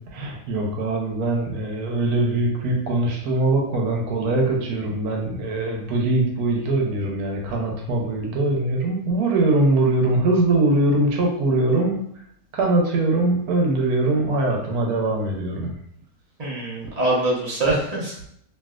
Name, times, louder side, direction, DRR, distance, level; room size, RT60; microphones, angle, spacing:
voice 1, 0.0-12.0 12.5-15.7, right 2 dB, 80° right, 0 dB, 1.2 m, -22 dB
voice 2, 16.4-18.3, right 2 dB, 30° right, -6 dB, 0.8 m, -24 dB
3.2 x 2.7 x 2.4 m, 0.69 s
omnidirectional pair, 1.6 m